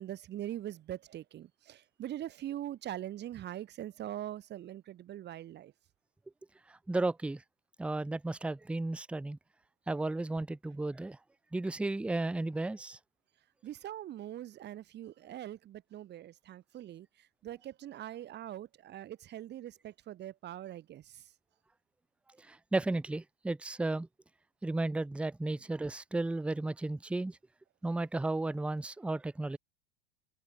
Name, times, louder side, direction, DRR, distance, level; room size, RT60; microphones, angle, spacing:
voice 1, 0.0-5.7 13.6-21.3 25.5-25.6, right 12 dB, 35° right, 3.4 m, -42 dB
voice 2, 6.7-7.4 7.8-9.4 9.9-11.2 11.5-13.0 22.4-24.1 24.6-27.4 27.8-29.6, right 2 dB, 5° right, 0.7 m, -34 dB
figure-of-eight pair, 85°, 30 cm